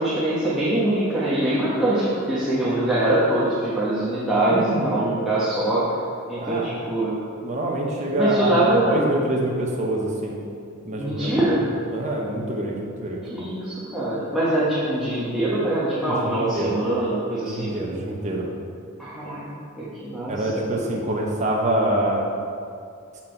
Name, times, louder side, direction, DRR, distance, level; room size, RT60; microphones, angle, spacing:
voice 1, 0.0-5.8 6.3-7.1 8.1-9.1 11.0-11.6 13.2-17.7 19.0-19.5 19.8-20.6, right 1 dB, ahead, -11 dB, 1.2 m, -23 dB
voice 2, 4.5-5.0 6.4-6.7 7.4-10.4 10.8-11.4 11.9-13.2 16.1-16.8 17.5-18.4 20.3-22.3, right 1 dB, 35° right, -2 dB, 1.0 m, -26 dB
7.4 x 5.9 x 4.5 m, 2.4 s
head